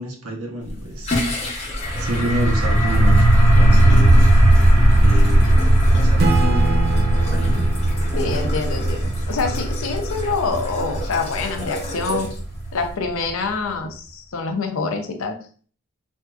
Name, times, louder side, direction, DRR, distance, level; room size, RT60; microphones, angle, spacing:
voice 1, 0.0-1.4 2.0-3.3 3.5-4.3 5.0-5.6 5.9-7.7, equal, 85° right, 2 dB, 0.8 m, -29 dB
sound 1, 0.6-13.0, left 1 dB, 30° left, 0.9 m, -32 dB
sound 2, 1.8-13.3, right 1 dB, 10° right, 1.3 m, -17 dB
Acoustic guitar / Strum, 6.2-9.7, right 4 dB, 45° right, 0.3 m, -29 dB
voice 2, 8.2-12.3 12.7-15.4, left 4 dB, 70° left, 5 dB, 0.6 m, -26 dB
3.4 x 2.6 x 2.3 m, 0.43 s
head